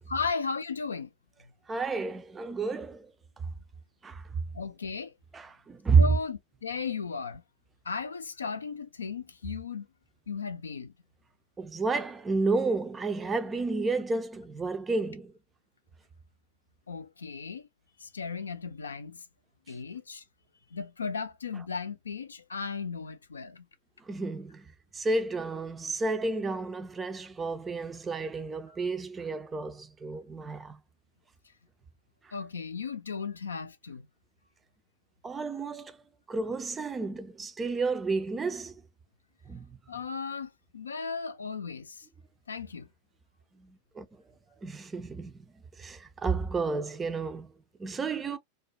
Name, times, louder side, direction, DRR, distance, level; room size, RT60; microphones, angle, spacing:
voice 1, 0.1-1.1 4.5-5.1 6.0-7.4 7.9-9.9 10.3-10.9 16.9-17.6 18.0-19.2 19.7-20.2 20.7-23.6 28.7-28.8 32.3-34.1 39.9-42.1 42.5-42.9, left 5 dB, 75° left, 0.3 m, -36 dB
voice 2, 1.7-3.1 4.0-4.2 5.3-6.0 11.6-15.3 24.1-24.6 24.9-30.8 35.2-36.0 36.3-38.7 39.5-39.6 44.0-44.1 44.6-45.3 45.8-47.5 47.8-48.4, right 4 dB, 15° right, 0.4 m, -30 dB
2.4 x 2.1 x 2.7 m
figure-of-eight pair, 90°, 0 cm